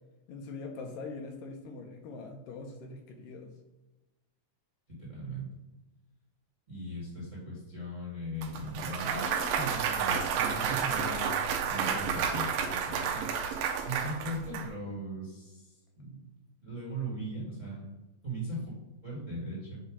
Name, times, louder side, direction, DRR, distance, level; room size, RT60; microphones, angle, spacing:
voice 1, 0.3-3.5, left 3 dB, 75° left, 3 dB, 2.2 m, -42 dB
voice 2, 5.0-5.5 6.7-11.3 11.6-16.3 16.6-17.9 18.2-18.7 19.0-19.8, right 1 dB, 20° right, -6 dB, 1.4 m, -39 dB
Clapping / Cheering / Applause, 8.4-14.6, right 7 dB, 90° right, 2.5 m, -31 dB
8.2 x 2.8 x 4.9 m, 1.1 s
omnidirectional pair, 4.1 m